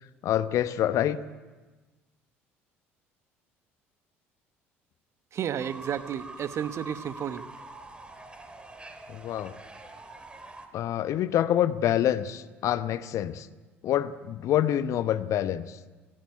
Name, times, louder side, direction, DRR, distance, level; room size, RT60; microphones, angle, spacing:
voice 1, 0.2-1.2 9.1-9.5 10.7-13.5 13.8-15.8, left 11 dB, 50° left, 14 dB, 1.0 m, -26 dB
voice 2, 5.3-7.4, right 9 dB, 45° right, 12 dB, 1.2 m, -32 dB
Fowl / Bird, 5.6-10.7, right 2 dB, 15° right, 3.2 m, -45 dB
18.5 x 17.5 x 9.4 m, 1.3 s
figure-of-eight pair, 55°, 7 cm